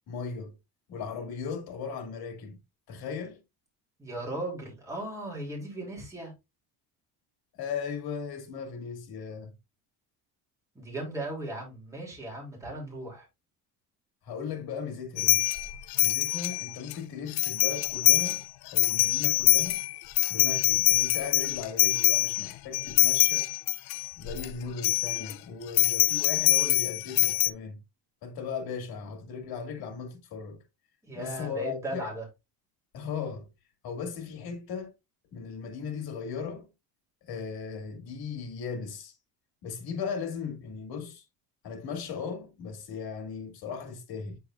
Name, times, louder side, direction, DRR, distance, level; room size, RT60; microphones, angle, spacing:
voice 1, 0.1-0.5 0.9-2.6 2.9-3.4 7.5-9.5 14.2-15.4 16.0-19.8 20.3-23.5 24.2-27.8 28.2-30.6 31.1-32.1 32.9-33.5 33.8-34.9 35.3-36.7 37.3-39.1 39.6-41.2 41.6-44.4, left 6 dB, 70° left, 2.5 m, -37 dB
voice 2, 4.0-6.3 10.7-13.3 31.0-32.3, right 1 dB, 10° right, 2.9 m, -37 dB
sound 1, 15.2-16.9 17.3-18.4 18.7-24.5 24.8-25.3 25.8-27.5, left 18 dB, 90° left, 0.6 m, -24 dB
8.5 x 4.7 x 2.4 m
cardioid pair, 145°, 38 cm